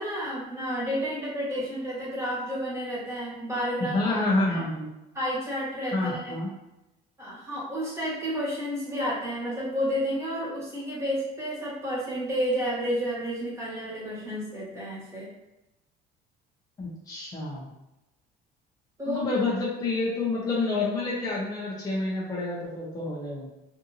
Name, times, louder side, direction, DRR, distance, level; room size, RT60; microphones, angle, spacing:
voice 1, 0.0-4.2 4.5-4.6 5.1-6.4 7.2-15.3 19.0-19.3, equal, 15° right, -7 dB, 1.3 m, -31 dB
voice 2, 3.9-4.9 5.9-6.5 16.8-17.7 19.1-23.5, left 2 dB, 20° left, -5 dB, 0.6 m, -28 dB
2.6 x 2.5 x 2.6 m, 0.94 s
cardioid pair, 115°, 18 cm